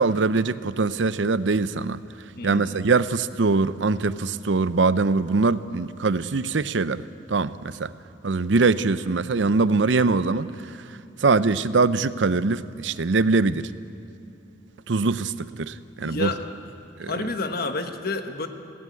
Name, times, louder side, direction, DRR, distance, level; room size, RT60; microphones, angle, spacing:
voice 1, 0.0-2.0 2.4-7.0 7.3-7.9 8.2-10.5 11.2-13.7 14.9-16.3 17.0-17.1, right 4 dB, 85° right, 14 dB, 0.6 m, -22 dB
voice 2, 2.3-2.8 16.0-16.4 17.1-18.5, left 3 dB, 55° left, 6 dB, 1.4 m, -29 dB
18.0 x 16.5 x 9.6 m, 2.8 s
head